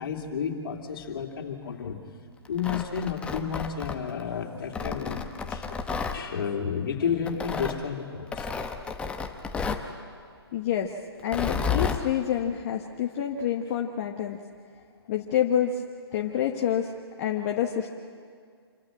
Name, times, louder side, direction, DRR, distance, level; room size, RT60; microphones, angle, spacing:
voice 1, 0.0-2.0 2.5-5.7 6.1-8.8, left 7 dB, 60° left, 2 dB, 3.1 m, -31 dB
Tearing, 2.5-4.2 4.7-6.2 7.3-7.8 8.3-9.9 11.2-12.0, left 5 dB, 10° left, 0.9 m, -31 dB
voice 2, 10.5-10.9 11.2-14.4 15.1-15.8 16.1-16.9 17.2-17.9, left 9 dB, 40° left, 2 dB, 1.2 m, -27 dB
26.5 x 14.5 x 9.0 m, 2.1 s
hypercardioid pair, 140°, 14 cm